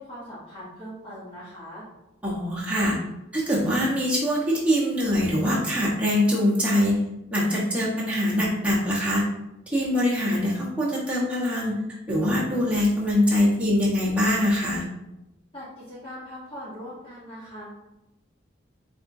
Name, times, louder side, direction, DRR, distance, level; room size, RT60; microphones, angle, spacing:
voice 1, 0.0-1.9 15.5-17.7, equal, 25° left, -10 dB, 1.0 m, -40 dB
voice 2, 2.2-3.0 3.3-7.0 7.3-9.3 9.7-11.7 12.1-14.8, left 1 dB, 5° right, -7 dB, 1.0 m, -23 dB
4.3 x 3.7 x 2.6 m, 0.95 s
head